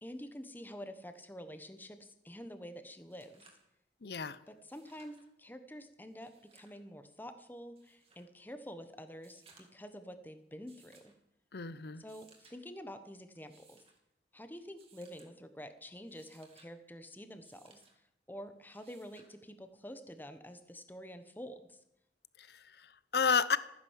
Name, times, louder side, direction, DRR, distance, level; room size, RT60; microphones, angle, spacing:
voice 1, 0.0-3.5 4.5-11.1 12.0-13.8 14.3-17.8 18.3-21.8, equal, 10° left, 9 dB, 1.1 m, -48 dB
sound 1, 2.6-2.7 3.0-3.7 4.6-5.3 6.1-6.8 7.8-8.3 9.1-9.9 10.7-11.2 11.9-12.6 13.4-14.0 14.8-15.3 15.9-16.7 17.4-17.9 18.7-19.3 20.7-20.8, right 4 dB, 35° right, 2.7 m, -64 dB
voice 2, 4.0-4.4 11.5-12.0 22.4-23.6, left 6 dB, 60° left, 16 dB, 0.7 m, -32 dB
14.5 x 10.0 x 7.4 m, 0.83 s
head